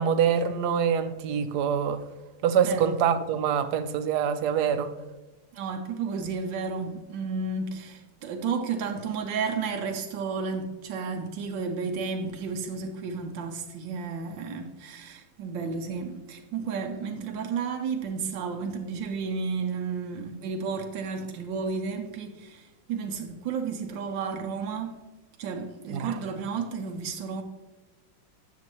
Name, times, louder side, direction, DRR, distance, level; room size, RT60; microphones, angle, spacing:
voice 1, 0.0-2.0 2.4-4.9 25.9-26.2, right 7 dB, 70° right, 1.1 m, -25 dB
voice 2, 2.6-3.0 5.5-25.0 25.4-27.4, right 5 dB, 85° right, 1.4 m, -32 dB
9.7 x 7.0 x 3.0 m
omnidirectional pair, 2.0 m